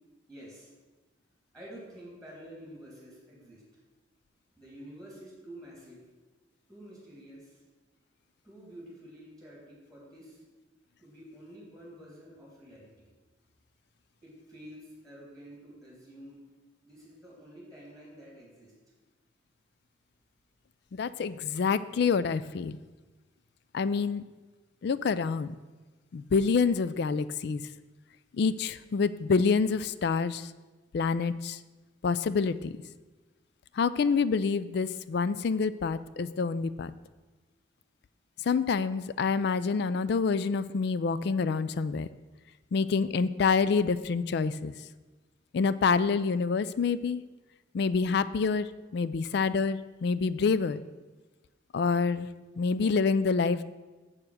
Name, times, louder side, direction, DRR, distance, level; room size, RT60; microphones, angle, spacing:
voice 1, 0.3-0.7 1.5-3.6 4.6-6.0 6.7-7.6 8.4-10.4 11.0-13.1 14.2-16.4 16.8-18.7, equal, 5° left, -5 dB, 3.2 m, -49 dB
voice 2, 20.9-22.8 23.7-24.2 24.8-25.5 26.1-27.6 28.4-30.4 30.9-31.6 32.0-32.7 33.8-36.9 38.5-42.1 42.7-44.7 45.5-47.2 47.7-48.7 48.9-50.8 51.7-52.3 52.6-53.6, left 5 dB, 60° left, 15 dB, 0.4 m, -27 dB
7.2 x 6.9 x 6.5 m, 1.2 s
head